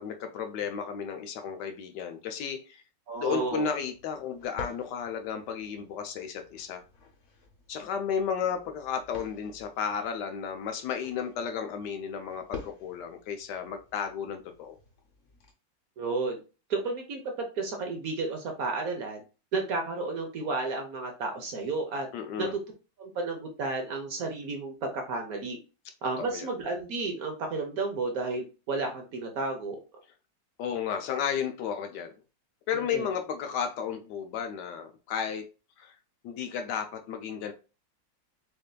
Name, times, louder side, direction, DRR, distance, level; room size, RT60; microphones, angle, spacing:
voice 1, 0.0-2.8 3.2-6.8 7.7-14.8 22.1-22.6 26.2-26.5 30.6-32.1 32.7-35.5 35.8-35.9 36.2-37.5, left 7 dB, 75° left, 1.1 m, -33 dB
sound 1, 3.1-15.5, left 5 dB, 50° left, 1.1 m, -49 dB
voice 2, 3.1-3.6 16.0-16.4 16.7-17.2 17.6-19.2 19.5-22.1 22.4-22.6 23.0-25.6 26.0-29.8 32.7-33.1, right 3 dB, 60° right, 1.1 m, -32 dB
6.4 x 2.6 x 2.2 m
omnidirectional pair, 2.0 m